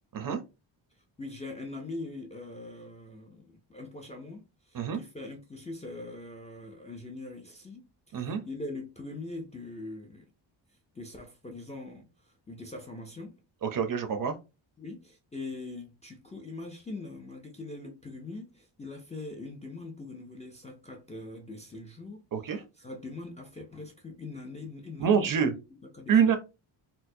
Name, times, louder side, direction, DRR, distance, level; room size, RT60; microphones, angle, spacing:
voice 1, 1.2-7.9 8.1-10.3 10.9-12.1 12.5-13.4 14.8-25.3 25.9-26.3, left 2 dB, 15° left, 0.3 m, -42 dB
voice 2, 13.6-14.4 22.3-22.6 25.0-25.5 26.1-26.4, right 7 dB, 45° right, 0.5 m, -25 dB
4.3 x 2.0 x 2.6 m
wide cardioid pair, 175°, 46 cm